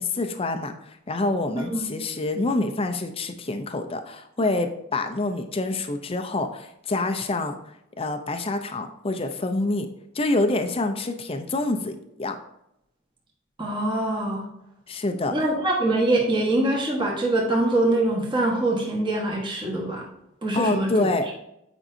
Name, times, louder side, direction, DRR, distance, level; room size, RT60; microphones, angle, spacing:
voice 1, 0.0-7.6 8.0-9.9 10.1-12.4 14.9-15.3 20.5-21.3, left 2 dB, 30° left, 6 dB, 0.5 m, -26 dB
voice 2, 13.6-14.4 15.3-20.1 20.4-21.3, right 1 dB, 25° right, -2 dB, 1.3 m, -24 dB
8.8 x 5.4 x 2.7 m, 0.82 s
head